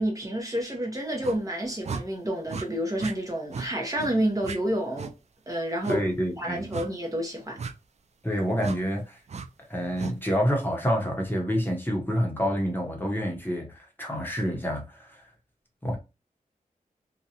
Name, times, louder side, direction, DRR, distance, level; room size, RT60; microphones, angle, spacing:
voice 1, 0.0-5.1 5.5-6.0 6.4-7.6, right 1 dB, 25° right, 0.7 m, -29 dB
sound 1, 1.2-1.4 1.8-2.0 2.5-2.7 3.0-3.1 3.5-3.7 4.0-4.1 4.4-4.6 4.9-5.1 5.8-6.0 6.7-6.9 7.6-7.7 8.6-8.8 9.3-9.5 9.9-10.1, right 5 dB, 50° right, 0.4 m, -35 dB
voice 2, 5.9-6.7 8.2-9.2 9.7-15.2 15.8-16.0, equal, 15° left, 0.8 m, -28 dB
2.6 x 2.2 x 2.7 m
wide cardioid pair, 85°, 14 cm